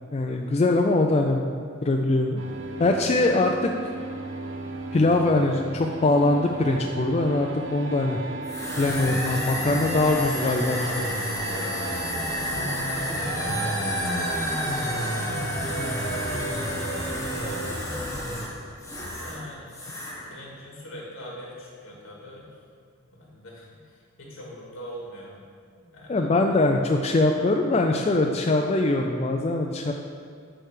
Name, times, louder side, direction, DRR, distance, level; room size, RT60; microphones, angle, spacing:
voice 1, 0.1-1.5 1.8-2.4 2.8-3.7 4.9-8.2 8.8-11.0 26.1-29.9, left 2 dB, 30° left, 2 dB, 0.3 m, -22 dB
sound 1, 2.4-17.7, right 3 dB, 65° right, 0.8 m, -37 dB
sound 2, 8.4-19.4 19.7-20.2, equal, 15° left, 1.1 m, -29 dB
voice 2, 9.7-12.1 12.7-14.5 14.8-18.2 19.1-19.8 20.3-22.6 23.0-25.4 25.7-26.2 27.4-27.5 29.0-29.1, equal, 75° left, -4 dB, 2.2 m, -42 dB
10.0 x 3.3 x 6.5 m, 2.1 s
head